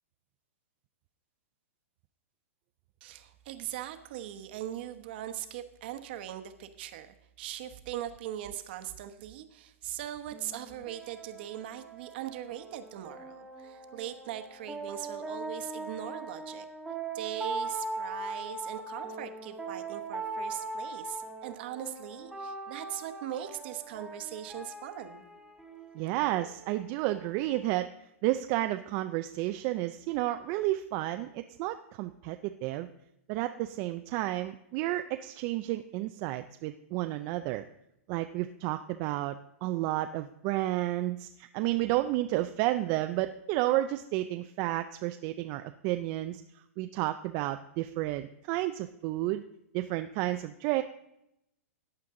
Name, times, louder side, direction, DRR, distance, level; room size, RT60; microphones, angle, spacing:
voice 1, 3.0-16.7 17.1-25.2, right 11 dB, 45° right, 8 dB, 1.0 m, -40 dB
sound 1, 10.3-27.8, right 3 dB, 5° right, 1.0 m, -41 dB
voice 2, 25.9-27.9 28.2-32.9 33.3-37.6 38.1-46.4 46.8-49.4 49.7-50.8, right 16 dB, 30° right, 8 dB, 0.4 m, -31 dB
14.5 x 9.6 x 3.7 m, 0.83 s
hypercardioid pair, 160°, 8 cm